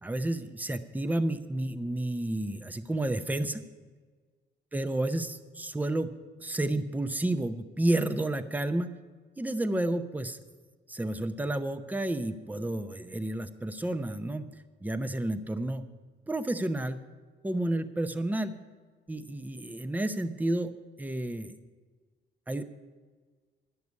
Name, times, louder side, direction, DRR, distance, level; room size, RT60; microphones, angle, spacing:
voice 1, 0.0-3.6 4.7-6.1 6.4-8.9 9.4-10.4 10.9-14.5 14.8-15.8 16.3-17.0 17.4-18.6 19.1-20.7 21.0-21.5 22.5-22.6, right 1 dB, 10° right, 9 dB, 0.7 m, -31 dB
11.0 x 6.7 x 9.4 m, 1.4 s
cardioid pair, 90°, 20 cm